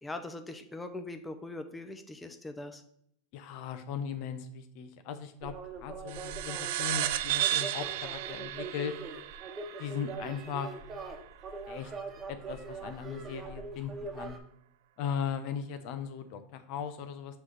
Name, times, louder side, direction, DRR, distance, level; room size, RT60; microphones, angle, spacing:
voice 1, 0.0-2.8, left 2 dB, 10° left, 7 dB, 0.6 m, -41 dB
voice 2, 3.3-5.5 5.8-8.9 9.8-10.7 11.7-11.9 12.3-14.3 15.0-17.4, left 7 dB, 60° left, 9 dB, 0.8 m, -38 dB
sound 1, 5.4-14.4, right 4 dB, 30° right, 1.1 m, -42 dB
sound 2, 6.1-11.0, right 13 dB, 70° right, 0.3 m, -34 dB
6.1 x 3.3 x 5.6 m, 0.72 s
supercardioid pair, 115°, 0 cm